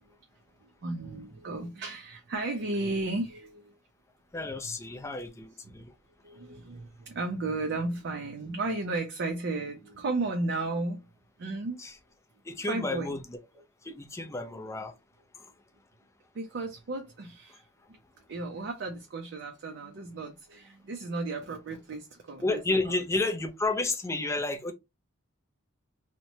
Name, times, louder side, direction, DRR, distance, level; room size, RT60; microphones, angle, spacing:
voice 1, 0.8-3.7 6.2-11.1 11.4-11.8 12.6-13.2 16.3-17.6 18.3-23.0, right 2 dB, 55° right, 0.4 m, -34 dB
voice 2, 4.3-5.9 11.8-11.9 12.5-13.4 13.8-14.9 22.4-24.7, left 2 dB, 15° left, 0.4 m, -31 dB
2.8 x 2.1 x 2.6 m
head